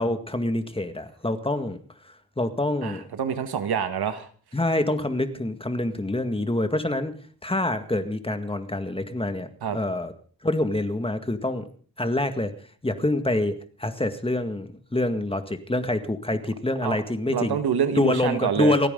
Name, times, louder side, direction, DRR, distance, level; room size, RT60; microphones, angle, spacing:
voice 1, 0.0-1.8 2.4-3.0 4.5-7.1 7.4-10.1 10.4-11.7 12.0-12.5 12.8-17.6 18.0-18.9, left 1 dB, 15° left, 8 dB, 1.9 m, -26 dB
voice 2, 2.8-4.3 9.6-9.8 16.8-17.0 17.3-18.7, right 7 dB, 75° right, 9 dB, 1.7 m, -26 dB
29.5 x 9.9 x 3.9 m, 0.42 s
cardioid pair, 85°, 38 cm